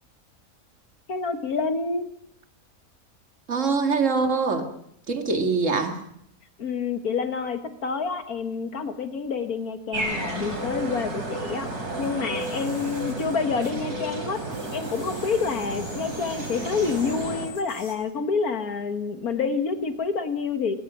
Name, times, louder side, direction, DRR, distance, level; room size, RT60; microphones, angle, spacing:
voice 1, 1.1-2.1 6.6-11.7 12.0-14.4 14.7-20.7, left 5 dB, 75° left, 8 dB, 2.0 m, -28 dB
voice 2, 3.5-4.7 5.1-6.0, right 4 dB, 55° right, 5 dB, 2.5 m, -23 dB
sound 1, 9.9-17.5, right 2 dB, 90° right, 4.3 m, -32 dB
sound 2, 11.9-14.1 14.3-17.9, left 2 dB, 55° left, 6.0 m, -45 dB
22.0 x 20.0 x 6.2 m, 0.70 s
omnidirectional pair, 1.6 m